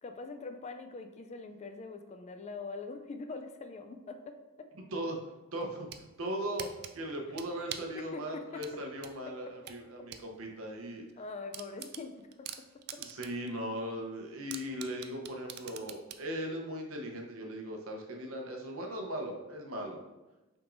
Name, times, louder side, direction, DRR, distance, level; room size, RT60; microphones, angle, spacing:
voice 1, 0.0-4.7 7.6-7.7 7.9-8.7 9.3-9.4 10.0-10.1 11.2-12.5 12.9-13.0, left 3 dB, 35° left, 6 dB, 0.3 m, -43 dB
voice 2, 5.5-5.9 6.2-6.7 6.9-11.1 13.0-20.0, equal, 85° right, 1 dB, 0.8 m, -38 dB
sound 1, 5.6-6.1 6.6-8.0 8.6-10.3 10.6-10.7 11.1-11.2 11.5-13.5 13.8-13.9 14.5-16.3, right 10 dB, 50° right, 0.3 m, -43 dB
5.7 x 3.6 x 2.5 m, 1.1 s
head